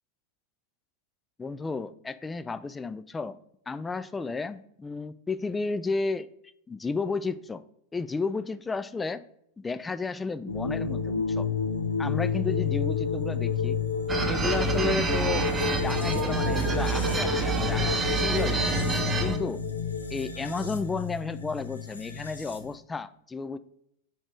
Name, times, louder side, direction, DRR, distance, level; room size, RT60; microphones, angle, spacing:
voice 1, 1.4-3.4 3.7-6.3 6.7-7.6 7.9-9.2 9.6-11.5 12.0-13.8 14.3-18.7 19.2-19.6 20.1-23.6, left 4 dB, 15° left, 0.3 m, -32 dB
sound 1, 10.5-22.8, left 6 dB, 80° left, 0.7 m, -30 dB
sound 2, 14.1-19.4, right 5 dB, 15° right, 0.7 m, -28 dB
4.8 x 4.3 x 4.7 m
figure-of-eight pair, 90°, 0 cm